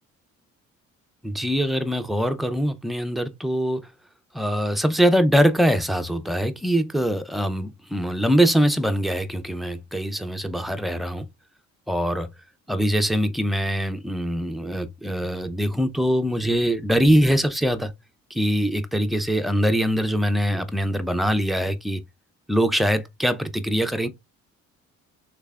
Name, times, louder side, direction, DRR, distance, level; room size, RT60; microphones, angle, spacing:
voice 1, 1.2-3.8 4.3-11.2 11.9-12.3 12.7-17.9 18.3-22.0 22.5-24.1, equal, ahead, 0.4 m, -23 dB
3.3 x 3.3 x 2.3 m
cardioid pair, 90°, 30 cm